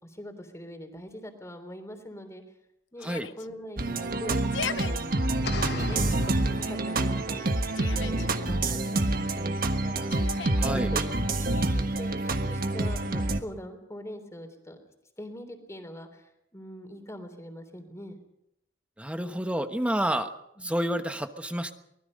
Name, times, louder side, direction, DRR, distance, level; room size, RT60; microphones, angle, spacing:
voice 1, 0.0-2.4 2.9-5.2 5.6-7.5 7.9-11.1 11.4-14.8 15.2-18.2 20.6-20.7, equal, 15° left, 6 dB, 3.4 m, -43 dB
Yell, 3.0-3.5 4.3-4.9 5.7-6.2 7.4-8.3 10.1-10.7, left 6 dB, 90° left, 0.9 m, -37 dB
sound 1, 3.8-13.4, right 2 dB, 50° right, 1.4 m, -27 dB
sound 2, 5.4-7.4, left 5 dB, 60° left, 1.1 m, -39 dB
voice 2, 10.5-10.9 19.0-20.3 20.6-21.7, right 1 dB, 5° right, 8 dB, 1.2 m, -29 dB
24.0 x 20.0 x 5.4 m, 0.79 s
head